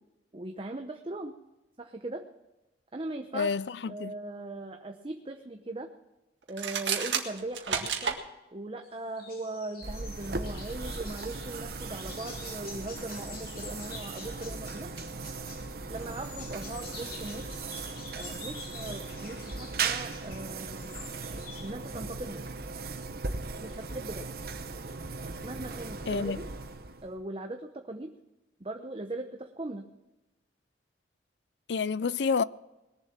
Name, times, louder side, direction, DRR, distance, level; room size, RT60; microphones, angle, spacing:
voice 1, 0.3-1.4 1.8-2.3 2.9-3.5 3.9-5.9 6.5-8.2 8.5-14.9 15.9-17.5 18.1-21.0 21.3-22.4 23.6-24.2 25.4-26.4 27.0-28.1 28.6-29.9, right 2 dB, 30° right, 0.8 m, -39 dB
voice 2, 3.3-4.1 26.1-26.4 31.7-32.4, left 5 dB, 75° left, 0.5 m, -29 dB
sound 1, 6.5-8.2, right 7 dB, 85° right, 1.8 m, -30 dB
sound 2, 8.8-8.9 9.2-21.7, left 4 dB, 55° left, 2.8 m, -47 dB
sound 3, 9.8-27.2, right 4 dB, 55° right, 1.0 m, -38 dB
20.0 x 7.4 x 7.2 m
head